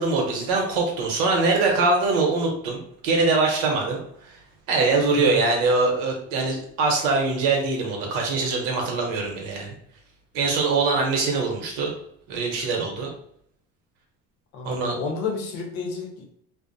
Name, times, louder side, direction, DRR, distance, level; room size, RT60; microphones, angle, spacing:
voice 1, 0.0-4.4 4.7-9.7 10.3-11.9 12.3-13.1 14.6-15.0, right 3 dB, 85° right, 0 dB, 0.8 m, -23 dB
voice 2, 14.5-16.3, left 4 dB, 85° left, 1 dB, 0.8 m, -31 dB
2.5 x 2.0 x 2.6 m, 0.68 s
supercardioid pair, 85°, 31 cm